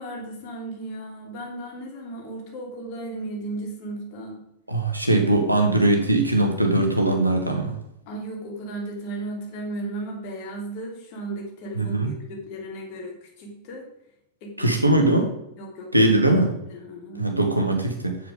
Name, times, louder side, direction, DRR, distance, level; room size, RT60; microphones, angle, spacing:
voice 1, 0.0-4.4 8.1-13.9 14.4-14.7 15.6-15.9 16.7-17.3, right 2 dB, 45° left, 0 dB, 2.9 m, -35 dB
voice 2, 4.7-7.8 11.7-12.1 14.6-15.3 15.9-16.5 17.2-18.2, right 2 dB, 85° right, 3 dB, 1.7 m, -20 dB
8.4 x 7.1 x 4.9 m, 0.80 s
figure-of-eight pair, 90°, 0 cm